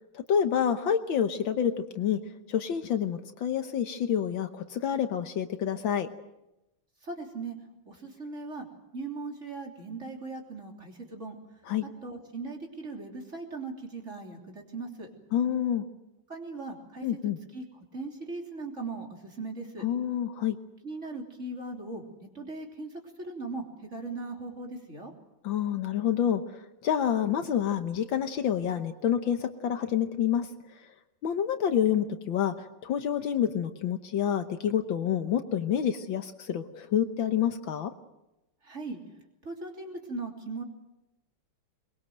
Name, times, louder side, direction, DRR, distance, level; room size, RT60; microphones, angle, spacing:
voice 1, 0.1-2.2 2.5-6.1 11.7-11.9 15.3-15.8 17.0-17.4 19.8-20.6 25.4-26.4 26.8-30.5 31.2-32.5 32.8-37.9, left 9 dB, 65° left, 9 dB, 1.7 m, -28 dB
voice 2, 7.0-7.6 7.9-8.7 8.9-11.4 11.8-15.1 16.3-17.1 17.5-17.6 17.9-19.9 20.8-22.9 23.2-23.6 23.9-25.1 38.6-39.0 39.4-40.6, right 3 dB, 30° right, 2 dB, 3.6 m, -39 dB
22.5 x 22.0 x 7.9 m, 0.92 s
omnidirectional pair, 2.4 m